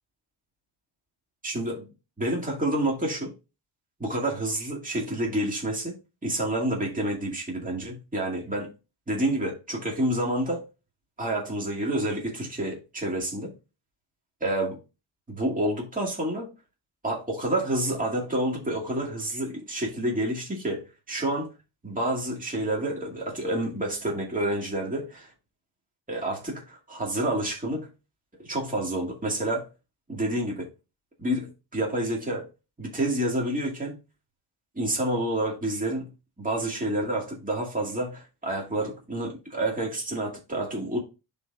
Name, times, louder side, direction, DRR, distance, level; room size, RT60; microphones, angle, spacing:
voice 1, 1.4-1.9 2.2-3.3 4.0-6.0 6.2-8.7 9.1-10.6 11.2-13.5 14.4-14.8 15.3-16.5 17.0-21.5 21.8-25.3 26.1-27.9 28.4-29.7 30.1-30.7 31.2-32.5 32.8-34.0 34.8-36.1 36.4-41.0, right 1 dB, 15° right, 2.2 m, -29 dB
11.5 x 4.2 x 2.4 m
cardioid pair, 80°, 46 cm